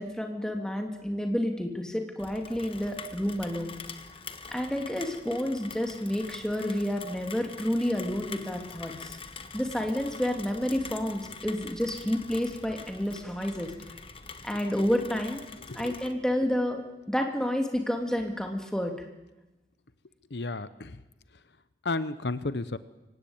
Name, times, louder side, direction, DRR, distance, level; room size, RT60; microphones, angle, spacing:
voice 1, 0.0-3.8 4.5-9.2 9.5-13.7 14.4-15.4 15.7-16.8 17.1-18.9, equal, 5° left, 3 dB, 2.8 m, -30 dB
Rain, 2.2-16.1, left 4 dB, 30° left, 1.5 m, -45 dB
voice 2, 20.3-21.0 21.8-22.8, left 3 dB, 75° left, 14 dB, 0.9 m, -32 dB
24.5 x 18.0 x 8.9 m, 1.0 s
head